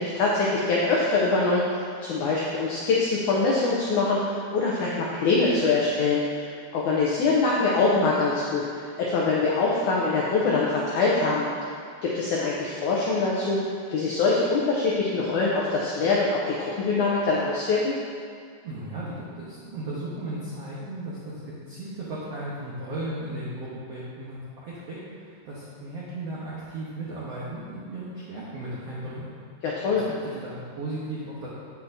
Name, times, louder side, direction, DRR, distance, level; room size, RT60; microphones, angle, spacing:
voice 1, 0.0-8.7 9.0-11.5 12.0-13.6 13.9-18.0 29.6-30.1, left 3 dB, 90° left, -5 dB, 1.7 m, -24 dB
voice 2, 18.6-21.3 21.7-25.0 25.2-29.3 29.9-31.5, right 1 dB, 80° right, -8 dB, 1.4 m, -36 dB
8.2 x 8.1 x 2.7 m, 2.1 s
omnidirectional pair, 4.5 m